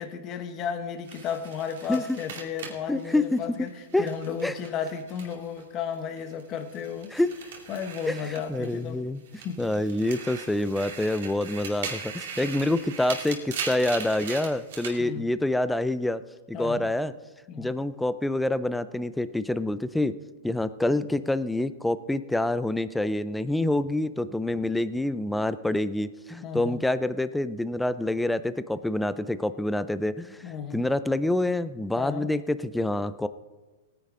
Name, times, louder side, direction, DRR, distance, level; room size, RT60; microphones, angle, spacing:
voice 1, 0.0-3.7 4.0-7.1 7.7-9.0 9.4-9.6 15.0-15.2 16.5-16.9 17.5-17.7 26.4-26.8 30.4-30.8 32.0-32.3, left 7 dB, 25° left, 8 dB, 0.9 m, -34 dB
sound 1, 1.1-5.6 5.9-8.9 9.3-15.0, right 6 dB, 60° right, 2.4 m, -39 dB
voice 2, 2.9-3.7 3.9-4.1 4.4-4.6 7.1-7.4 8.1-16.2 16.5-17.1 17.6-20.2 20.4-33.3, left 1 dB, 5° left, 14 dB, 0.3 m, -27 dB
19.0 x 9.7 x 3.7 m, 1.3 s
supercardioid pair, 170°, 0 cm